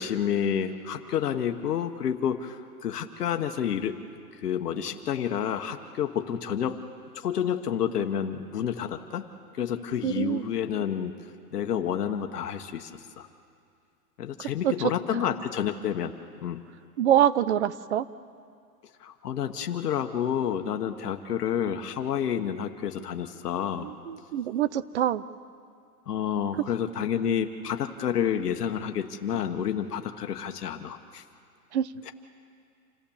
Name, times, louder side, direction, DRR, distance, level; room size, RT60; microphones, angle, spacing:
voice 1, 0.0-4.0 4.3-6.8 7.1-9.3 9.6-11.1 11.5-13.3 14.2-16.1 16.4-16.6 19.0-23.9 26.1-31.2 32.0-32.1, left 8 dB, 70° left, 6 dB, 1.3 m, -29 dB
voice 2, 10.0-10.4 14.4-15.2 17.0-18.1 23.8-25.2 31.7-31.9, right 10 dB, 45° right, 17 dB, 0.7 m, -25 dB
27.5 x 14.5 x 7.1 m, 2.4 s
hypercardioid pair, 160°, 48 cm